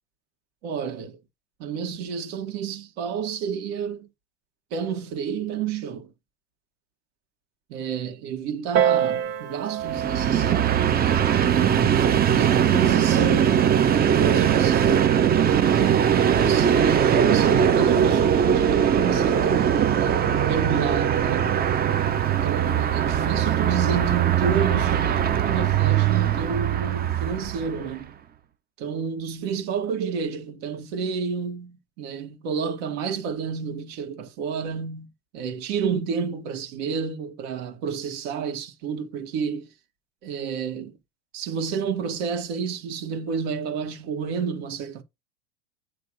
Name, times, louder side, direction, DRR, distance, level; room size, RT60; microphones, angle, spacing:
voice 1, 0.6-1.2 1.6-4.1 4.7-6.1 7.7-10.8 11.4-11.8 12.3-15.2 16.2-21.6 22.2-28.1 28.8-35.1 35.3-39.7 40.2-41.0 41.3-45.0, right 6 dB, 60° right, 2.1 m, -30 dB
Piano, 8.7-13.9 14.8-14.9, right 9 dB, 45° right, 1.5 m, -29 dB
Train, 9.8-27.9, right 9 dB, 25° right, 0.9 m, -21 dB
8.4 x 3.3 x 6.3 m
hypercardioid pair, 100°, 35 cm